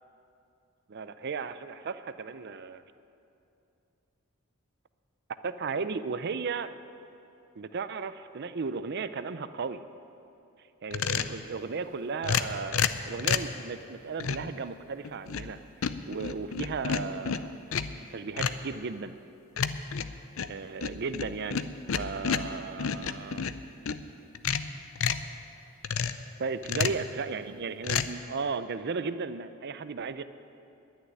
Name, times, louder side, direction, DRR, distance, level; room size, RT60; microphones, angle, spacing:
voice 1, 0.9-2.8 5.4-6.7 7.6-9.8 10.8-17.5 18.1-19.2 19.6-19.7 20.5-23.5 26.4-30.2, right 4 dB, 50° right, 12 dB, 0.5 m, -35 dB
sound 1, 10.9-11.4 12.2-13.6 14.2-14.5 15.0-15.5 15.8-18.0 18.4-18.7 19.6-24.0 24.3-25.3 25.8-26.3 26.6-27.1 27.8-28.1, left 7 dB, 70° left, 0.5 m, -30 dB
11.0 x 9.7 x 9.8 m, 2.7 s
head